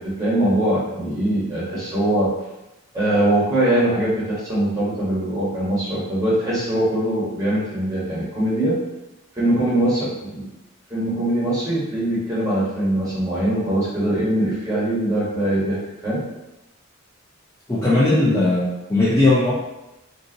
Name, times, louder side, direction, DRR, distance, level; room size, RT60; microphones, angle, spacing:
voice 1, 0.0-2.3 2.9-8.8 9.3-10.5 10.9-16.2, right 1 dB, 15° right, -8 dB, 1.3 m, -22 dB
voice 2, 17.7-19.5, left 2 dB, 15° left, -8 dB, 0.5 m, -18 dB
2.5 x 2.5 x 3.9 m, 0.96 s
head